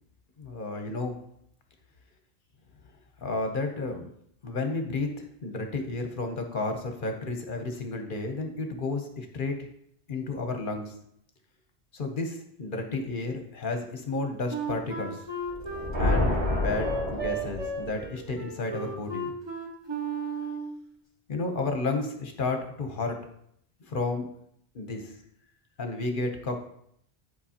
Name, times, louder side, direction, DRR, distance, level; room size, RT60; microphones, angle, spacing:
voice 1, 0.4-1.2 3.2-4.1 4.4-9.7 10.1-10.9 11.9-15.2 16.0-19.3 21.3-23.3 23.8-24.3 24.7-25.1 25.8-26.6, left 3 dB, 55° left, 4 dB, 0.9 m, -32 dB
Wind instrument woodwind instrument, 14.5-20.8, right 3 dB, 25° right, 1.1 m, -34 dB
sound 1, 15.5-18.1, left 1 dB, 85° right, 2.8 m, -28 dB
10.0 x 4.5 x 2.8 m, 0.70 s
omnidirectional pair, 1.1 m